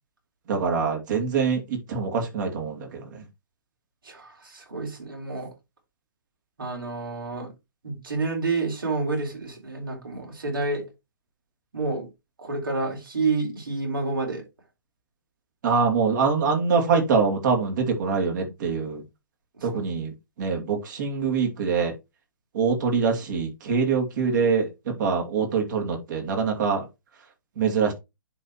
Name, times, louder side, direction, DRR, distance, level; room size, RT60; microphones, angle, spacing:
voice 1, 0.5-3.1 15.6-19.0 19.6-20.1 20.4-21.9 22.5-26.9 27.6-27.9, right 5 dB, 60° right, 2.8 m, -24 dB
voice 2, 4.1-5.5 6.6-7.5 7.8-10.8 11.7-12.1 12.4-14.4 19.7-19.8, right 3 dB, 85° right, 3.6 m, -29 dB
10.5 x 4.2 x 3.0 m
hypercardioid pair, 135°, 11 cm